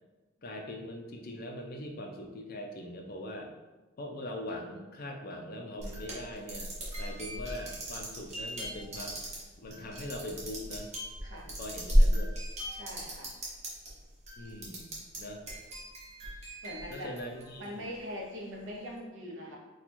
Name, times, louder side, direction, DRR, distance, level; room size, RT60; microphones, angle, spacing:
voice 1, 0.4-3.5 4.0-6.7 7.0-9.2 9.6-10.9 11.5-12.3 14.4-14.9 15.2-15.4 16.9-17.9, left 1 dB, 45° left, 3 dB, 0.4 m, -41 dB
sound 1, 5.8-13.9 14.2-15.2 15.5-17.9, equal, 35° right, 0.9 m, -33 dB
voice 2, 12.7-13.3 16.6-17.1 17.6-19.6, equal, 65° right, -2 dB, 0.8 m, -42 dB
2.9 x 2.3 x 4.2 m, 1.2 s
head